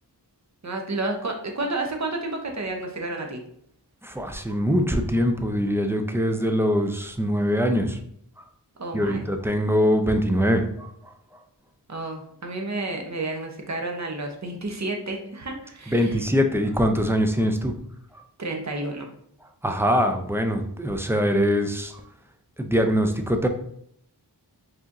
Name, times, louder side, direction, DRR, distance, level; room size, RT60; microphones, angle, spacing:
voice 1, 0.6-3.4 8.8-9.2 11.9-16.2 18.4-19.1, right 2 dB, 40° right, 2 dB, 0.8 m, -31 dB
voice 2, 4.0-8.0 8.9-10.9 15.9-17.7 19.6-21.9 22.6-23.5, equal, 5° right, 5 dB, 0.4 m, -23 dB
4.7 x 2.9 x 2.5 m, 0.68 s
wide cardioid pair, 55°, 42 cm